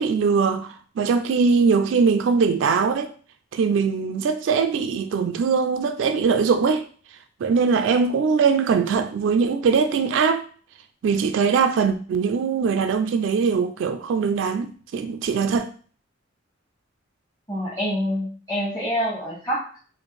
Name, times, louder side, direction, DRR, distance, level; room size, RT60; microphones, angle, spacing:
voice 1, 0.0-3.1 3.5-6.8 7.4-10.5 11.0-15.7, right 5 dB, 70° right, 0.3 m, -21 dB
voice 2, 17.5-19.8, equal, 20° left, 0.8 m, -26 dB
4.3 x 2.5 x 3.1 m
head